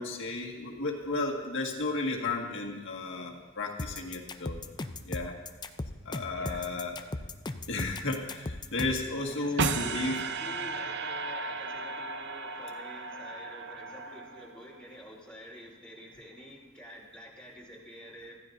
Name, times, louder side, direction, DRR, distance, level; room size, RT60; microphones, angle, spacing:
voice 1, 0.0-4.6 5.1-5.3 6.1-7.0 7.7-10.2, left 3 dB, 60° left, -1 dB, 1.9 m, -33 dB
sound 1, 3.8-9.1, left 2 dB, 20° left, 0.5 m, -37 dB
voice 2, 6.4-6.7 9.2-18.4, equal, 5° left, -5 dB, 3.2 m, -48 dB
sound 2, 9.6-14.8, right 4 dB, 55° right, 0.7 m, -35 dB
25.0 x 14.5 x 2.7 m, 1.3 s
head